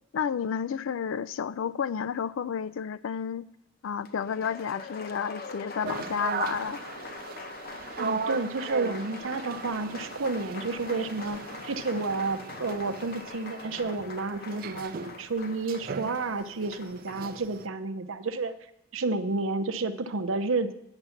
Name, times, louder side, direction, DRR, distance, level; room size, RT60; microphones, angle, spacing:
voice 1, 0.1-3.5 3.8-6.8, left 7 dB, 70° left, 0.3 m, -31 dB
Applause, 4.0-17.3, left 3 dB, 45° left, 0.8 m, -43 dB
sound 1, 5.8-17.7, right 5 dB, 45° right, 0.3 m, -38 dB
voice 2, 8.0-14.9 15.2-18.5 18.9-20.7, right 3 dB, 75° right, 0.7 m, -30 dB
9.7 x 7.0 x 5.8 m
head